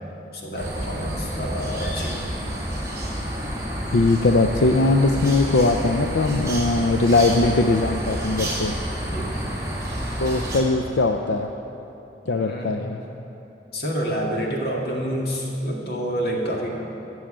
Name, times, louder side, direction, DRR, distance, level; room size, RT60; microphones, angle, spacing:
voice 1, 0.3-2.2 9.0-9.4 12.2-12.7 13.7-16.8, equal, 60° left, -2 dB, 2.0 m, -28 dB
sound 1, 0.6-10.6, equal, 20° right, 2.1 m, -29 dB
voice 2, 3.9-8.7 10.2-11.5 12.3-13.0, left 2 dB, 85° left, 4 dB, 0.5 m, -20 dB
14.0 x 6.4 x 8.7 m, 3.0 s
head